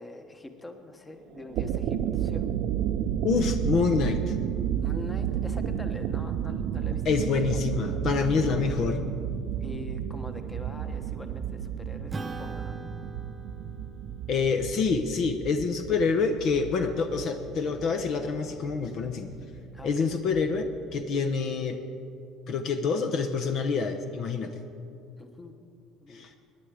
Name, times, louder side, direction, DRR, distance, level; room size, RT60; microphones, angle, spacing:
voice 1, 0.0-2.5 3.3-3.4 4.8-7.0 7.5-7.6 9.6-12.8 19.7-20.2 25.2-25.5 26.0-26.3, left 1 dB, 15° left, 6 dB, 1.2 m, -44 dB
sound 1, 1.4-21.0, right 9 dB, 65° right, 0.5 m, -32 dB
voice 2, 3.2-4.3 7.1-9.0 14.3-19.3 19.8-21.8 22.5-24.5 26.1-26.3, left 5 dB, 55° left, 6 dB, 0.8 m, -27 dB
Acoustic guitar / Strum, 12.1-16.9, right 3 dB, 20° right, 0.7 m, -42 dB
18.5 x 10.0 x 4.9 m, 2.6 s
cardioid pair, 110°, 0 cm